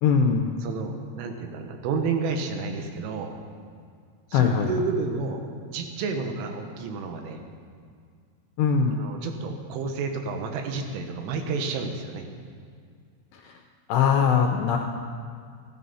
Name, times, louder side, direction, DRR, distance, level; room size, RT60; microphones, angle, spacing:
voice 1, 0.0-0.6 4.3-4.7 8.6-9.0 13.9-14.8, left 6 dB, 80° left, 3 dB, 2.5 m, -21 dB
voice 2, 0.6-3.3 4.3-5.4 5.7-7.4 8.9-12.3, right 4 dB, 90° right, 5 dB, 3.7 m, -30 dB
14.5 x 13.0 x 5.5 m, 2.1 s
omnidirectional pair, 5.5 m